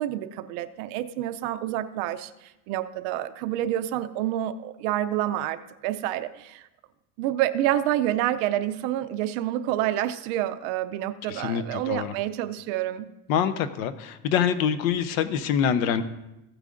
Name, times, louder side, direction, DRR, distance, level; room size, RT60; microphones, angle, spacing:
voice 1, 0.0-5.6 5.8-6.7 7.2-13.1, right 13 dB, 60° right, 10 dB, 0.5 m, -28 dB
voice 2, 11.3-12.1 13.3-16.0, left 8 dB, 80° left, 11 dB, 0.9 m, -25 dB
15.5 x 9.1 x 2.5 m, 0.94 s
cardioid pair, 165°, 42 cm